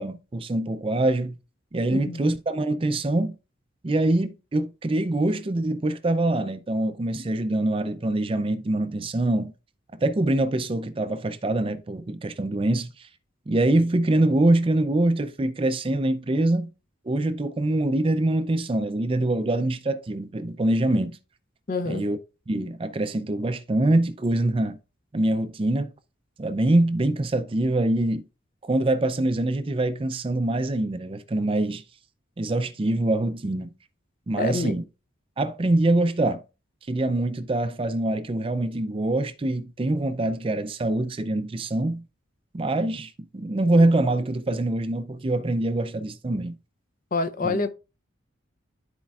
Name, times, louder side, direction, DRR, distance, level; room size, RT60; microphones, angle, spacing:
voice 1, 0.0-1.4 1.7-3.4 3.8-9.5 10.0-13.1 13.5-16.7 17.1-21.2 21.9-22.2 22.5-24.8 25.1-25.9 26.4-28.2 28.6-31.8 32.4-33.7 34.3-34.8 35.4-36.4 36.9-42.0 42.5-46.6 47.4-47.6, right 1 dB, 25° right, 0.4 m, -24 dB
voice 2, 1.9-2.2 21.7-22.0 34.4-34.7 47.1-47.7, left 3 dB, 45° left, 0.6 m, -27 dB
12.5 x 4.4 x 2.3 m
head